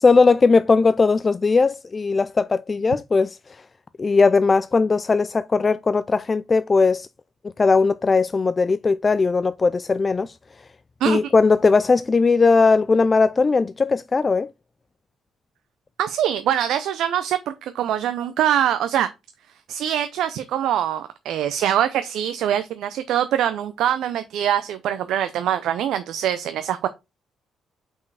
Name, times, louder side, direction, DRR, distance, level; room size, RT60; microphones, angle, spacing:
voice 1, 0.0-3.4 4.0-7.1 7.6-10.3 11.1-14.5, left 4 dB, 35° left, 0.3 m, -18 dB
voice 2, 16.0-19.1 19.7-26.9, right 10 dB, 75° right, 0.5 m, -23 dB
5.4 x 4.4 x 4.8 m
supercardioid pair, 60°, 0 cm